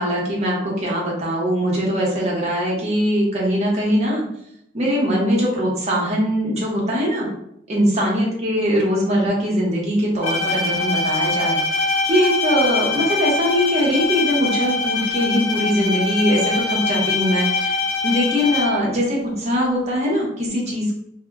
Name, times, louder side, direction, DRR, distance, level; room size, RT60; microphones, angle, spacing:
voice 1, 0.0-4.2 4.7-7.3 7.7-11.6 12.1-17.8 18.0-21.0, equal, 35° right, -3 dB, 0.7 m, -21 dB
Bowed string instrument, 10.2-19.0, left 3 dB, 90° left, 0.5 m, -23 dB
2.1 x 2.0 x 3.4 m, 0.76 s
head